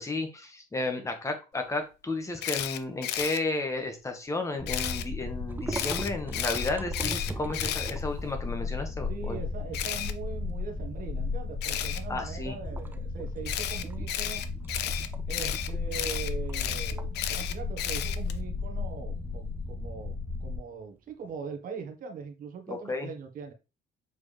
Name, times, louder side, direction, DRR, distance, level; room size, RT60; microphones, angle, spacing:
voice 1, 0.0-9.4 12.1-12.6 22.7-23.1, left 2 dB, 20° left, 5 dB, 1.7 m, -33 dB
Camera, 2.4-3.4 4.7-5.0 5.7-8.5 9.7-10.1 11.6-12.0 13.4-18.4, left 11 dB, 80° left, 0.7 m, -33 dB
sound 1, 4.6-20.6, left 3 dB, 40° left, 3.4 m, -35 dB
sound 2, 5.5-8.4 8.9-9.0 9.3-10.5 10.9-11.2 11.6-12.1 12.6-21.3, right 3 dB, 10° right, 0.4 m, -42 dB
voice 2, 9.1-14.4 15.3-23.5, right 5 dB, 55° right, 4 dB, 1.5 m, -41 dB
7.0 x 4.7 x 3.4 m, 0.30 s
cardioid pair, 110°, 17 cm